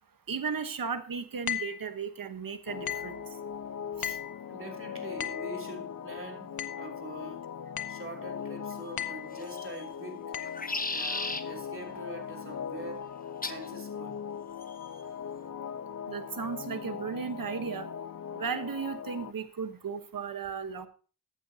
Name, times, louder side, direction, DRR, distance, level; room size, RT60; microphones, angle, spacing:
voice 1, 0.3-3.2 4.0-4.2 16.1-17.9 18.3-20.9, right 6 dB, 75° right, 1.2 m, -35 dB
sound 1, 1.5-1.8 2.9-3.2 4.0-4.4 5.2-5.5 6.6-6.9 7.8-8.1 9.0-9.3 10.3-10.6, left 10 dB, 90° left, 0.8 m, -36 dB
sound 2, 2.7-19.3, left 7 dB, 55° left, 0.7 m, -40 dB
voice 2, 4.5-6.5 6.7-7.5 7.9-10.4 10.9-13.0 13.4-14.2, right 1 dB, 35° right, 3.1 m, -44 dB
sound 3, 9.4-9.8 10.4-11.4 13.4-13.7 14.6-15.0, left 3 dB, 25° left, 1.0 m, -35 dB
14.0 x 9.1 x 2.8 m
cardioid pair, 40°, 35 cm